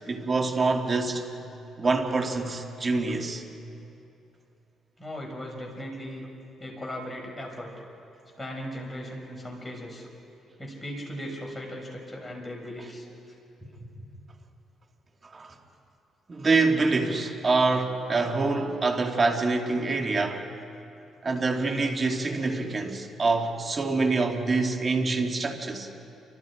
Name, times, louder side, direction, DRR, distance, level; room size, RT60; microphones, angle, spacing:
voice 1, 0.1-1.3 1.8-3.4 15.2-15.5 16.3-20.5 21.2-25.9, right 3 dB, 35° right, 3 dB, 2.6 m, -26 dB
voice 2, 5.0-6.2 6.6-7.7 8.4-10.1 10.6-13.1 13.6-13.9, equal, 10° left, -1 dB, 6.6 m, -38 dB
30.0 x 25.0 x 5.1 m, 2.8 s
cardioid pair, 90°, 0 cm